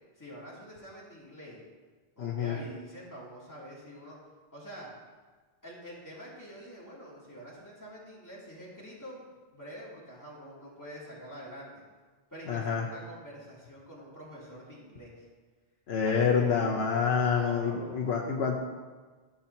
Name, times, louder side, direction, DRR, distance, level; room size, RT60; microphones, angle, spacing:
voice 1, 0.2-1.6 2.2-4.2 4.5-4.9 5.6-9.2 9.5-11.8 12.3-15.2 16.0-16.7 17.2-18.1, equal, 15° left, -7 dB, 2.6 m, -46 dB
voice 2, 2.2-2.6 12.5-12.8 15.9-18.6, left 6 dB, 75° left, 0 dB, 1.0 m, -27 dB
13.0 x 7.2 x 2.8 m, 1.4 s
omnidirectional pair, 1.1 m